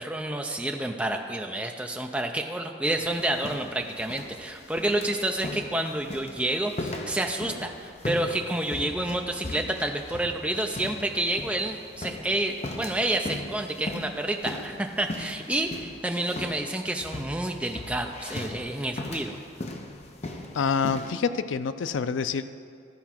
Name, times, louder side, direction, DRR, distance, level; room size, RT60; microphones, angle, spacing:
voice 1, 0.0-19.4, right 1 dB, 5° right, 3 dB, 0.5 m, -29 dB
sound 1, 3.0-21.1, left 2 dB, 35° left, 0.6 m, -39 dB
voice 2, 20.5-22.4, left 6 dB, 85° left, 12 dB, 0.4 m, -27 dB
13.0 x 4.7 x 5.9 m, 2.3 s
head